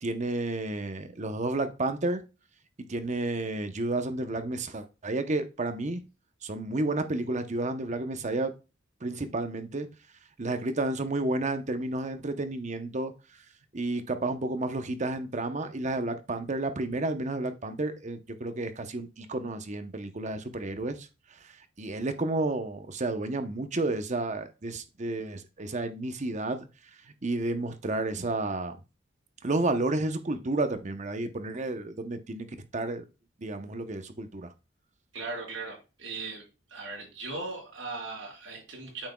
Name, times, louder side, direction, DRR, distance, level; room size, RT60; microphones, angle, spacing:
voice 1, 0.0-2.2 2.9-6.0 6.4-8.5 9.0-9.9 10.4-13.1 13.7-21.1 21.8-26.7 27.2-28.8 29.4-32.5 32.7-33.0 33.4-34.5, right 2 dB, 35° right, 0.8 m, -31 dB
voice 2, 35.1-36.4 36.7-39.1, right 3 dB, 65° right, 3.8 m, -38 dB
8.7 x 5.9 x 2.2 m
head